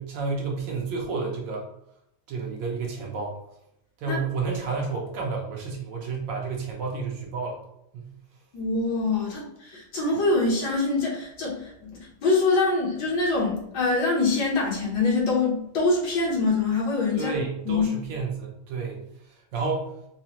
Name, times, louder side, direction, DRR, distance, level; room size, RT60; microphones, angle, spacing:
voice 1, 0.0-1.7 2.3-3.4 4.0-7.6 7.9-8.1 17.1-19.0 19.5-19.9, right 4 dB, 70° right, 0 dB, 1.2 m, -30 dB
voice 2, 8.5-17.3 17.6-17.8, left 3 dB, 60° left, -4 dB, 1.3 m, -24 dB
4.9 x 2.1 x 2.9 m, 0.79 s
omnidirectional pair, 2.2 m